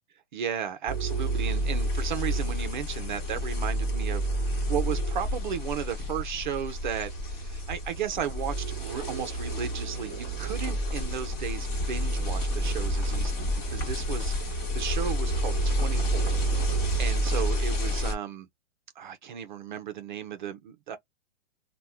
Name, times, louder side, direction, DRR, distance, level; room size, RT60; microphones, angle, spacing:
voice 1, 0.3-16.4 16.7-18.5 19.0-21.0, right 8 dB, 40° right, 0.5 m, -35 dB
sound 1, 0.9-18.1, equal, 25° left, 1.1 m, -29 dB
2.8 x 2.1 x 3.4 m
hypercardioid pair, 155°, 36 cm